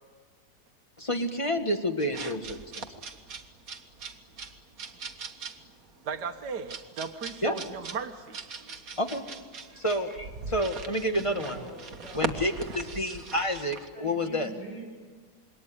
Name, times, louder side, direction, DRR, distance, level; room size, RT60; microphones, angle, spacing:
voice 1, 1.0-2.9 7.4-7.6 9.0-9.3 9.8-11.6 12.1-14.5, equal, 20° left, 5 dB, 1.8 m, -29 dB
sound 1, 2.0-13.9, right 5 dB, 55° right, 1.8 m, -40 dB
voice 2, 6.1-8.4 9.7-9.8, right 6 dB, 75° right, 4 dB, 1.8 m, -36 dB
voice 3, 11.2-12.4 13.9-14.8, right 1 dB, 85° left, -1 dB, 7.9 m, -44 dB
27.5 x 22.5 x 9.6 m, 1.5 s
omnidirectional pair, 1.8 m